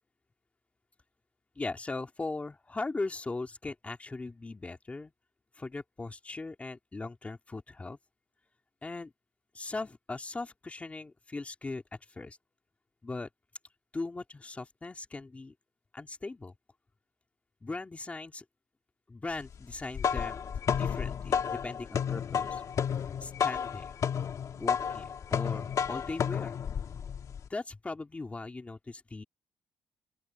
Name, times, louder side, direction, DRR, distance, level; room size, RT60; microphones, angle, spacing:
voice 1, 1.5-5.1 5.5-8.0 8.8-9.1 9.5-12.4 13.0-13.3 13.9-15.5 15.9-16.5 17.6-18.4 19.1-22.6 23.2-23.9 24.6-26.5 27.5-29.2, left 3 dB, 20° left, 2.7 m, -39 dB
sound 1, 19.7-27.5, left 7 dB, 50° left, 2.1 m, -32 dB
open air
cardioid pair, 135°, 7 cm